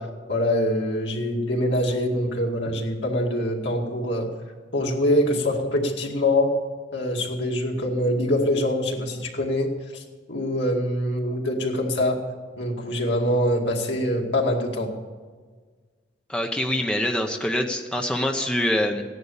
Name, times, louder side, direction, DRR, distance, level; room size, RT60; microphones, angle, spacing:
voice 1, 0.0-4.3 4.7-6.5 6.9-10.0 10.3-12.2 12.6-14.9, left 1 dB, 80° left, 0 dB, 2.3 m, -24 dB
voice 2, 16.3-19.0, left 1 dB, 5° left, 3 dB, 0.9 m, -25 dB
16.0 x 10.5 x 7.1 m, 1.5 s
head